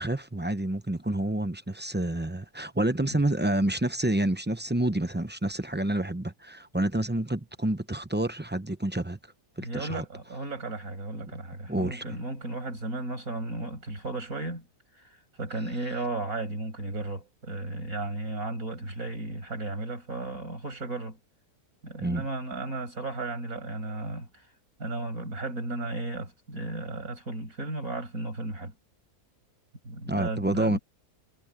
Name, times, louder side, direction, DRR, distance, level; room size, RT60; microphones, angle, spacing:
voice 1, 0.0-9.2 9.6-10.0 11.7-12.0 22.0-22.3 30.1-30.8, right 1 dB, 15° right, 0.4 m, -28 dB
voice 2, 9.6-14.7 15.0-21.2 21.8-24.4 24.8-28.7 29.8-30.8, right 2 dB, 65° right, 6.9 m, -34 dB
omnidirectional pair, 1.6 m